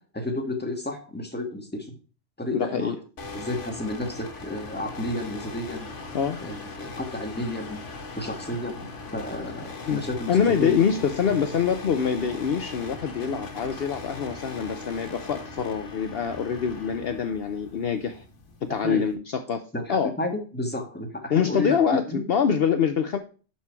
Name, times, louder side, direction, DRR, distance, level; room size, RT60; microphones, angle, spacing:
voice 1, 0.1-1.9 2.4-2.9 3.3-5.9 6.4-7.8 8.2-8.8 9.1-10.8 18.8-19.0 19.7-22.2, left 1 dB, 10° left, 3 dB, 1.4 m, -31 dB
voice 2, 2.5-2.9 6.1-6.4 9.9-18.2 18.6-19.6 19.9-20.1 21.3-23.2, left 7 dB, 60° left, 7 dB, 0.9 m, -25 dB
sound 1, 3.2-19.1, left 3 dB, 80° left, 1.8 m, -40 dB
11.5 x 4.5 x 4.6 m, 0.37 s
omnidirectional pair, 1.2 m